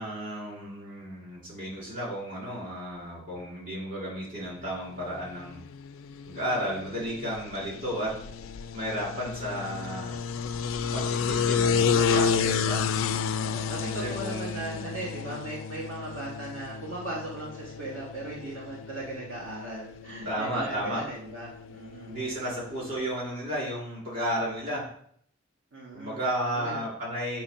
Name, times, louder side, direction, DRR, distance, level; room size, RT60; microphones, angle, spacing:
voice 1, 0.0-5.6 6.3-8.1 8.7-10.1 10.9-12.8 14.0-15.0 20.2-21.0 22.1-24.8 25.9-27.4, equal, 45° right, -5 dB, 3.0 m, -33 dB
sound 1, 5.0-23.1, left 6 dB, 75° left, 0.4 m, -31 dB
voice 2, 9.5-10.0 13.3-22.1 25.7-26.2 26.5-26.8, right 1 dB, 80° right, -5 dB, 1.6 m, -38 dB
6.8 x 3.2 x 5.6 m, 0.63 s
head